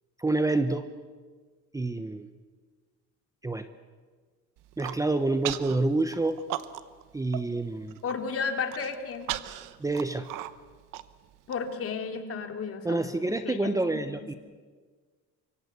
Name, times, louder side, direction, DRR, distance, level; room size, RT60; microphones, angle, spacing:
voice 1, 0.2-0.8 1.7-2.3 3.4-3.7 4.8-6.4 7.1-8.0 9.8-10.3 12.8-14.3, right 2 dB, 10° right, 10 dB, 0.9 m, -27 dB
Human voice, 4.6-5.0 5.4-5.8 6.1-7.0 7.3-7.4 7.8-8.2 8.7-11.6, right 14 dB, 90° right, 1.1 m, -36 dB
voice 2, 8.0-9.3 11.5-14.4, left 5 dB, 45° left, 5 dB, 3.0 m, -34 dB
24.5 x 24.5 x 8.2 m, 1.5 s
cardioid pair, 145°, 31 cm